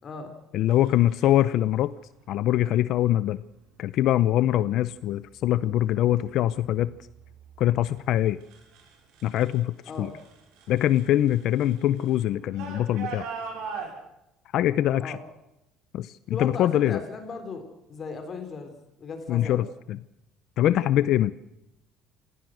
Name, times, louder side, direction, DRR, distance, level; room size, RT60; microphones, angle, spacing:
voice 1, 0.0-0.3 9.9-10.1 15.0-15.2 16.3-18.7 19.0-19.6, left 4 dB, 30° left, 7 dB, 3.4 m, -37 dB
voice 2, 0.5-1.9 2.3-3.4 3.8-6.9 7.6-8.4 9.2-10.1 10.7-13.3 14.5-15.2 15.9-17.0 19.3-20.0 20.6-21.3, left 13 dB, 55° left, 16 dB, 0.7 m, -23 dB
sound 1, 0.7-1.4 2.5-2.9 3.4-3.9 4.4-4.9 5.3-9.6 9.8-13.9, right 5 dB, 70° right, 6.7 m, -42 dB
26.5 x 17.0 x 6.4 m, 0.87 s
cardioid pair, 155°, 0 cm